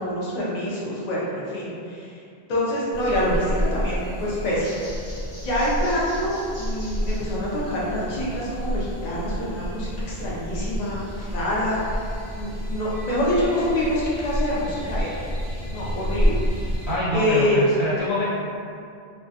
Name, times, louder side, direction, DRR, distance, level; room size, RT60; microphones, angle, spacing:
voice 1, 0.0-2.1 2.5-4.8 5.4-11.8 12.4-15.1 15.7-16.4 17.1-17.6, left 1 dB, 50° left, -7 dB, 0.6 m, -26 dB
sound 1, 2.9-16.9, equal, 15° left, 0.9 m, -29 dB
voice 2, 16.9-18.2, equal, 85° left, -12 dB, 1.3 m, -25 dB
2.2 x 2.2 x 2.6 m, 2.5 s
omnidirectional pair, 1.1 m